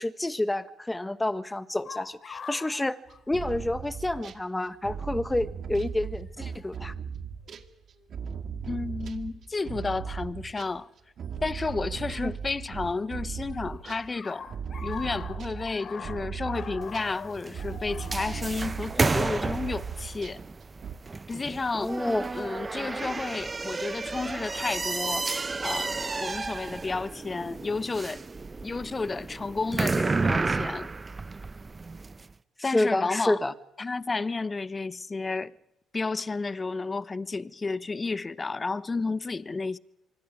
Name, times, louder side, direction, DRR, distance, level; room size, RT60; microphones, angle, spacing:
voice 1, 0.0-3.0 3.3-6.9 12.2-12.3 21.8-22.3 32.7-33.5, left 1 dB, 15° left, 1.5 m, -29 dB
sound 1, 1.8-3.9 4.2-4.3 5.3-5.6 6.6-6.8 7.5-8.0 10.7-10.8 12.1-13.0 13.2-19.8, left 6 dB, 50° left, 3.2 m, -44 dB
sound 2, 3.1-4.4 4.8-10.8 11.2-20.5 20.8-21.0, right 7 dB, 55° right, 1.9 m, -37 dB
voice 2, 8.6-10.9 11.4-14.5 14.8-20.4 21.3-22.0 22.3-28.2 28.6-30.9 32.6-33.4 33.8-35.6 35.9-39.8, left 3 dB, 30° left, 0.9 m, -32 dB
sound 3, 16.8-32.2, right 3 dB, 30° right, 0.8 m, -32 dB
25.5 x 24.0 x 4.9 m
hypercardioid pair, 50°, 0 cm